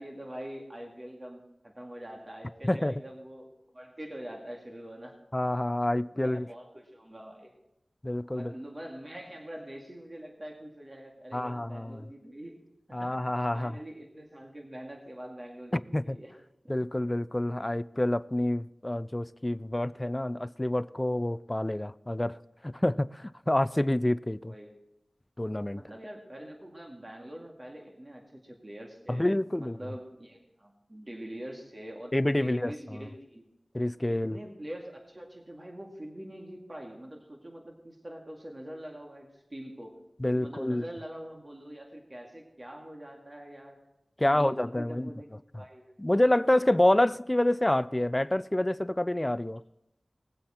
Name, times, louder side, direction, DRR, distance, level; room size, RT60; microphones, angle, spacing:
voice 1, 0.0-5.2 6.2-7.6 8.3-12.6 13.0-13.2 13.5-16.3 24.5-24.8 25.7-29.2 29.6-32.1 32.4-33.5 34.1-39.9 40.4-43.8 44.2-45.3 45.6-45.8, right 1 dB, 35° right, 2.1 m, -44 dB
voice 2, 2.6-3.0 5.3-6.5 8.0-8.5 11.3-12.0 12.9-13.8 15.7-16.2 16.7-22.4 22.6-24.5 25.4-25.8 29.1-29.8 32.1-33.0 33.7-34.4 40.2-40.8 44.2-45.1 46.0-49.6, left 1 dB, 20° left, 0.3 m, -27 dB
19.0 x 7.8 x 4.3 m
wide cardioid pair, 50°, 0 cm